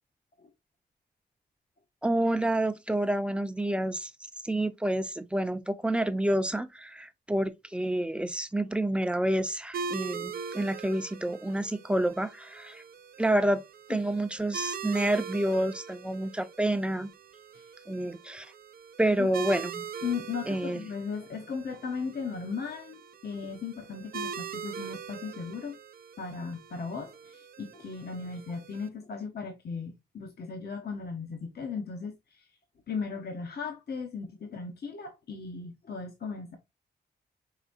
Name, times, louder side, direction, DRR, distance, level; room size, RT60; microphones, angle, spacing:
voice 1, 2.0-4.1 4.4-12.8 13.2-13.6 13.9-17.1 17.9-18.5 19.0-19.8 20.5-20.8, right 1 dB, 5° right, 0.6 m, -28 dB
sound 1, 9.7-28.9, right 6 dB, 60° right, 0.5 m, -42 dB
voice 2, 20.0-25.8 26.2-32.5 32.9-36.6, left 5 dB, 65° left, 0.9 m, -37 dB
4.9 x 3.3 x 2.5 m
cardioid pair, 75°, 17 cm